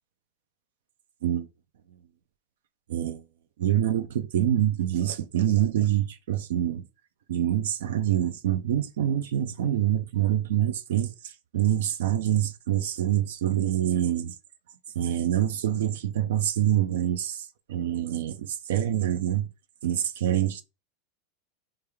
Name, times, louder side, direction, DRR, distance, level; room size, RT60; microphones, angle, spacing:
voice 1, 2.9-3.2 3.6-6.8 7.3-14.3 15.0-19.5 19.8-20.6, right 11 dB, 85° right, 0.4 m, -26 dB
3.2 x 2.3 x 3.3 m
supercardioid pair, 125°, 0 cm